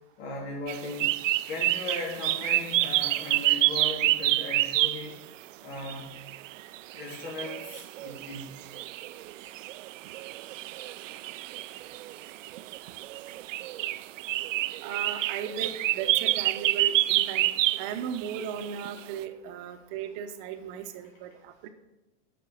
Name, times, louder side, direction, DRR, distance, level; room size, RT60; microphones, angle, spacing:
voice 1, 0.2-1.1 1.5-5.2 5.6-6.2 6.9-8.6, left 2 dB, 55° left, -3 dB, 3.5 m, -38 dB
sound 1, 0.7-5.1 5.7-19.0, right 16 dB, 85° right, 0.5 m, -28 dB
voice 2, 14.8-17.5 17.8-21.7, right 8 dB, 40° right, 8 dB, 0.9 m, -36 dB
7.4 x 6.0 x 7.6 m, 1.0 s
supercardioid pair, 150°, 37 cm